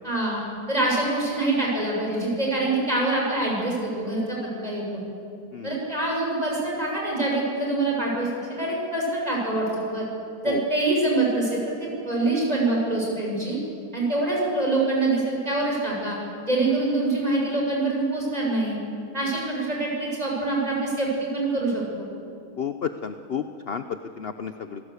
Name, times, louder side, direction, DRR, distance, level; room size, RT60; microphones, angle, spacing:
voice 1, 0.0-0.4 0.7-5.0 5.6-10.0 10.4-13.6 13.9-16.2 16.4-18.8 19.1-22.1, right 2 dB, 25° right, -3 dB, 6.7 m, -25 dB
voice 2, 22.6-24.8, left 7 dB, 50° left, 9 dB, 0.9 m, -32 dB
28.0 x 18.0 x 8.3 m, 2.5 s
omnidirectional pair, 1.6 m